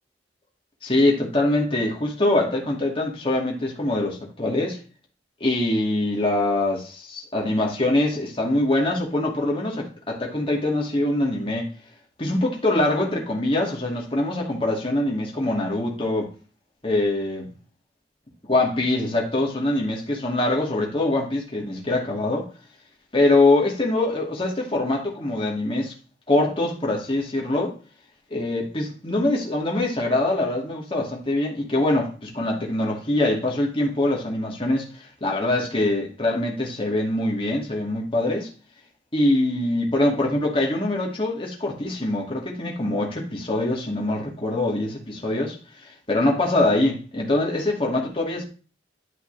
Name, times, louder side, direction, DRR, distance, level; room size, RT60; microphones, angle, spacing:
voice 1, 0.8-4.8 5.4-11.7 12.2-16.3 16.8-17.5 18.5-22.5 23.1-25.9 26.3-27.7 28.3-38.5 39.1-45.6 46.1-48.4, left 2 dB, 30° left, 2.3 m, -23 dB
11.0 x 5.4 x 3.4 m
head